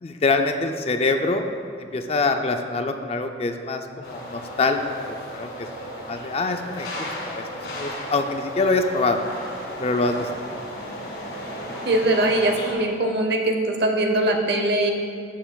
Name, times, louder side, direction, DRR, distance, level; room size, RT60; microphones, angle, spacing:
voice 1, 0.0-1.5 1.8-4.8 5.1-5.7 6.0-6.9 7.3-7.4 7.7-9.2 9.8-10.3, left 3 dB, 35° left, 6 dB, 0.4 m, -24 dB
sound 1, 4.0-12.7, equal, 65° left, 1.6 m, -34 dB
voice 2, 11.9-14.9, right 1 dB, 60° right, 3 dB, 0.8 m, -21 dB
11.0 x 7.0 x 2.3 m, 2.3 s
head